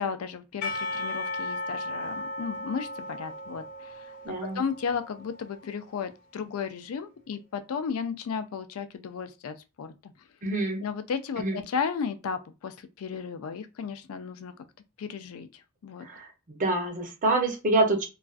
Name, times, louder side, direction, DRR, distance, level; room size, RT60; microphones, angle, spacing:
voice 1, 0.0-10.1 10.8-14.5 15.0-15.5 15.8-16.1, left 6 dB, 80° left, 0.4 m, -34 dB
Percussion / Church bell, 0.6-5.7, left 1 dB, 35° left, 0.8 m, -36 dB
voice 2, 4.2-4.6 10.4-10.8 11.4-11.6 16.0-18.0, right 2 dB, 40° right, 0.6 m, -26 dB
2.4 x 2.3 x 2.4 m
head